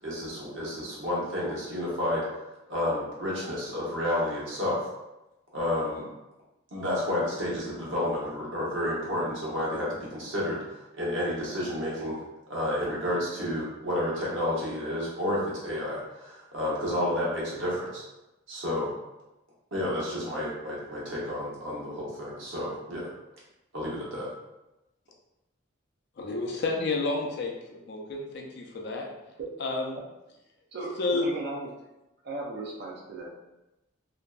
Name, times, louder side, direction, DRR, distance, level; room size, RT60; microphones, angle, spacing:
voice 1, 0.0-2.2 2.7-4.8 5.5-6.0 6.7-10.6 10.9-12.2 12.5-18.0 18.5-18.9 19.7-23.1 23.7-24.3, left 1 dB, 65° right, -5 dB, 0.8 m, -30 dB
voice 2, 26.2-29.1 29.6-30.0 31.0-31.3, left 3 dB, 55° left, 1 dB, 0.4 m, -30 dB
voice 3, 30.7-31.7 32.2-33.3, right 2 dB, 50° right, -2 dB, 0.3 m, -36 dB
2.5 x 2.1 x 2.3 m, 0.96 s
head